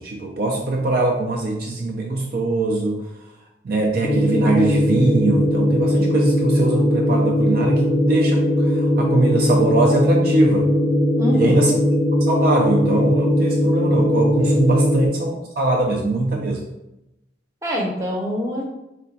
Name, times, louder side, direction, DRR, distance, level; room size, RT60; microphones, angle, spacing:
voice 1, 0.0-3.0 3.6-10.7 11.3-11.7 12.2-16.6, right 2 dB, 50° right, 0 dB, 0.4 m, -22 dB
sound 1, 4.0-15.1, left 1 dB, 20° left, 0.3 m, -19 dB
voice 2, 11.2-11.7 17.6-18.6, left 1 dB, 15° right, -1 dB, 0.6 m, -24 dB
3.2 x 2.3 x 4.0 m, 0.91 s
head